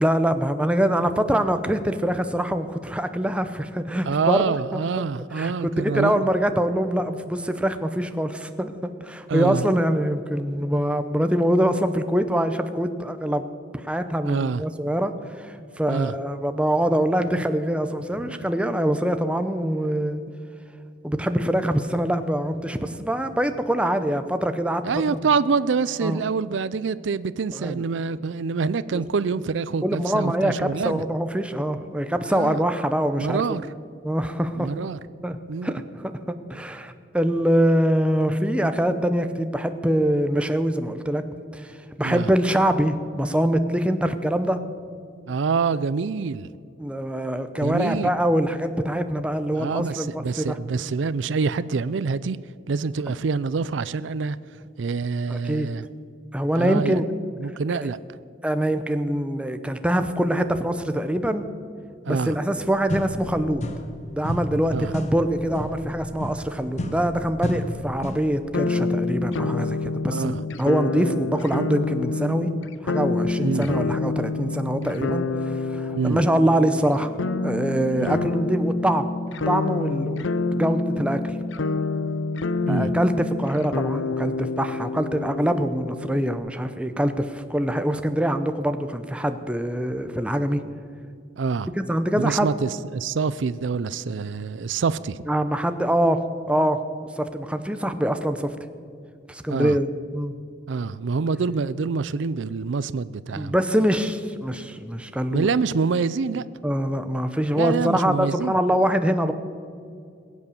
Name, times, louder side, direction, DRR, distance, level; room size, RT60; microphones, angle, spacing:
voice 1, 0.0-4.8 5.3-13.4 13.8-20.2 21.0-25.2 26.0-26.2 27.5-27.8 28.9-29.0 29.8-33.7 34.0-34.7 35.2-41.2 41.5-44.6 46.8-50.6 55.3-55.7 56.3-57.0 57.7-57.8 58.4-61.5 62.1-63.6 64.1-72.5 72.8-77.1 77.4-79.1 79.5-81.4 82.7-90.6 91.8-92.5 95.3-96.8 97.2-98.5 99.3-100.3 103.3-105.5 106.6-109.3, equal, 5° right, 8 dB, 0.7 m, -24 dB
voice 2, 4.0-6.3 9.3-9.8 14.2-14.6 15.9-16.1 24.8-31.0 32.3-32.6 33.2-33.6 34.6-35.0 35.5-35.8 42.0-42.3 45.3-46.5 47.6-48.1 49.6-52.4 52.7-54.4 54.8-55.9 56.5-57.0 57.4-58.0 62.0-62.4 64.7-64.9 70.1-70.4 73.4-73.9 76.0-76.2 77.9-78.2 82.7-83.0 91.4-91.7 92.2-95.2 99.5-99.8 100.7-103.5 105.3-106.4 107.6-108.6, right 5 dB, 75° right, 16 dB, 0.4 m, -26 dB
sound 1, 62.5-62.6 62.9-68.4, equal, 35° left, 1.1 m, -32 dB
sound 2, 68.5-86.4, left 3 dB, 80° left, 0.6 m, -27 dB
21.0 x 8.4 x 7.1 m, 2.3 s
head